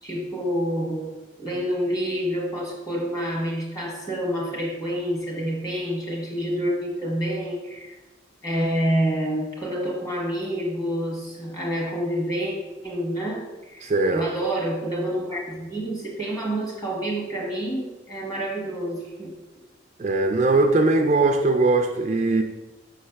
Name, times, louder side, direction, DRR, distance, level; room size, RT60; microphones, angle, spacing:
voice 1, 0.0-1.1 1.4-7.9 8.4-12.5 12.8-19.3, equal, 20° left, -2 dB, 1.4 m, -28 dB
voice 2, 13.8-14.3 20.0-22.4, right 2 dB, 35° right, 5 dB, 0.3 m, -20 dB
5.7 x 3.2 x 5.7 m, 1.1 s
head